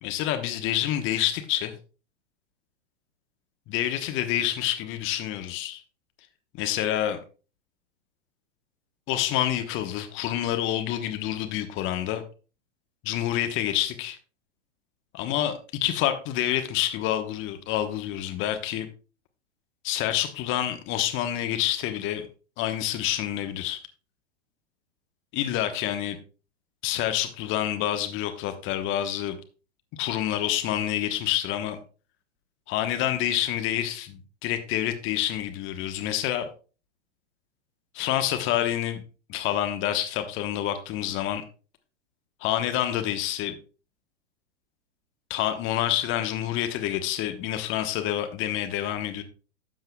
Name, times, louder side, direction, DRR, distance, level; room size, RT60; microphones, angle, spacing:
voice 1, 0.0-1.7 3.7-5.8 6.6-7.2 9.1-12.2 13.0-14.2 15.1-18.9 19.8-22.3 22.6-23.8 25.3-26.2 26.8-29.4 30.0-31.8 32.7-36.5 37.9-39.0 39.3-41.4 42.4-43.6 45.3-49.2, left 12 dB, 35° left, 8 dB, 1.1 m, -27 dB
12.5 x 7.8 x 2.2 m, 0.35 s
figure-of-eight pair, 100°, 36 cm